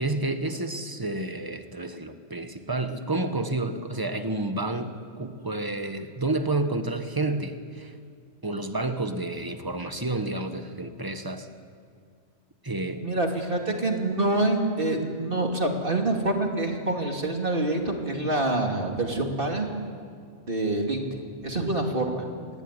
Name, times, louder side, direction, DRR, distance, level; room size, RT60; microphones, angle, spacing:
voice 1, 0.0-7.9 8.4-11.5 12.6-13.0, right 2 dB, 15° right, 8 dB, 1.4 m, -30 dB
voice 2, 13.0-19.7 20.5-21.0 21.4-22.2, right 2 dB, 40° right, 2 dB, 2.7 m, -26 dB
26.0 x 19.5 x 9.9 m, 2.2 s
omnidirectional pair, 1.4 m